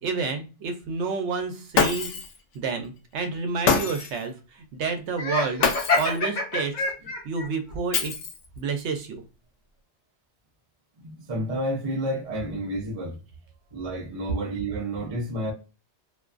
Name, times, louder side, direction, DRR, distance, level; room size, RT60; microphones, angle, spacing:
voice 1, 0.0-2.1 2.5-5.7 5.9-6.7 7.2-8.1 8.6-9.2, right 4 dB, 75° right, 0.9 m, -29 dB
Shatter, 1.7-2.4 3.7-4.2 5.6-6.2 7.9-8.6, left 5 dB, 85° left, 0.9 m, -25 dB
Laughter, 5.2-7.5, left 3 dB, 50° left, 0.8 m, -26 dB
voice 2, 11.0-13.2 13.7-15.5, right 1 dB, 40° right, 0.5 m, -30 dB
2.5 x 2.2 x 2.4 m
omnidirectional pair, 1.2 m